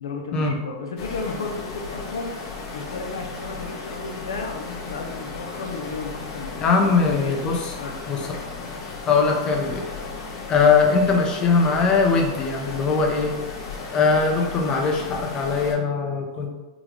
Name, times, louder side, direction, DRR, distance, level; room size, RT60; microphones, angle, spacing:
voice 1, 0.0-8.0, left 3 dB, 90° left, 3 dB, 0.5 m, -34 dB
sound 1, 1.0-15.7, left 4 dB, 45° left, 1.0 m, -35 dB
voice 2, 6.6-7.7 8.1-8.3 8.6-8.8 9.1-9.8 10.5-13.3 13.9-16.5, left 4 dB, 30° left, 2 dB, 0.6 m, -21 dB
3.7 x 2.4 x 3.1 m, 1.2 s
hypercardioid pair, 130°, 3 cm